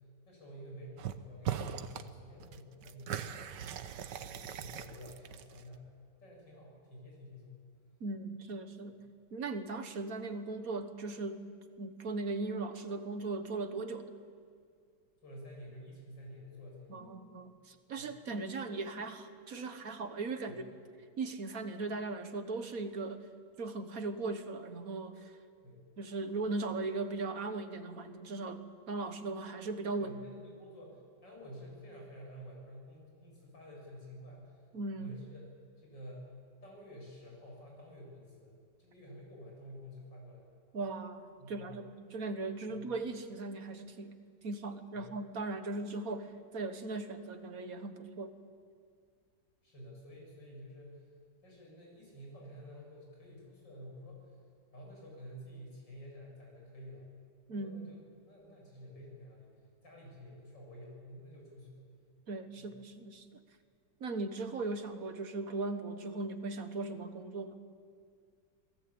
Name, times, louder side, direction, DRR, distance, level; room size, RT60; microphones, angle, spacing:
voice 1, 0.3-3.4 4.0-7.6 15.2-17.1 18.0-18.2 20.5-20.6 25.6-25.9 30.0-34.6 35.0-35.5 35.8-36.3 36.6-40.6 41.4-41.8 42.7-42.9 44.9-45.1 49.6-51.1 51.4-54.4 54.7-57.1 57.5-59.5 59.8-61.9 62.6-62.7, equal, 85° left, -2 dB, 8.7 m, -50 dB
sound 1, 1.0-1.2 1.4-2.1 2.4-5.8, right 9 dB, 75° right, 1.6 m, -40 dB
voice 2, 8.0-9.0 9.3-11.5 11.8-14.1 16.9-20.6 21.2-23.2 23.6-25.4 26.0-30.1 34.7-35.2 40.7-44.2 44.4-48.3 57.5-57.9 62.3-63.3 64.0-67.6, right 3 dB, 55° right, 8 dB, 1.7 m, -38 dB
27.5 x 19.0 x 8.8 m, 2.1 s
omnidirectional pair, 1.9 m